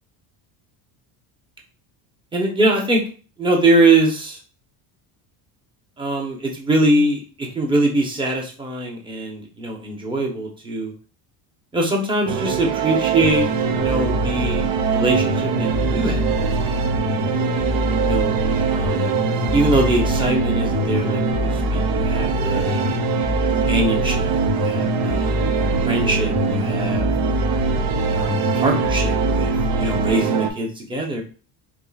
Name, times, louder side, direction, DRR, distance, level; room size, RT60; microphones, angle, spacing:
voice 1, 2.3-3.0 3.4-4.4 6.0-10.9 11.7-13.5 13.8-16.2 17.1-17.3 18.0-18.4 18.7-19.1 19.5-22.7 23.6-25.3 25.9-27.1 28.1-31.2, right 2 dB, 10° right, 0 dB, 0.9 m, -22 dB
sound 1, 12.3-30.5, right 8 dB, 70° right, 0.7 m, -23 dB
sound 2, 13.2-30.1, left 4 dB, 35° left, 0.4 m, -25 dB
3.6 x 3.4 x 2.4 m, 0.38 s
supercardioid pair, 105°, 47 cm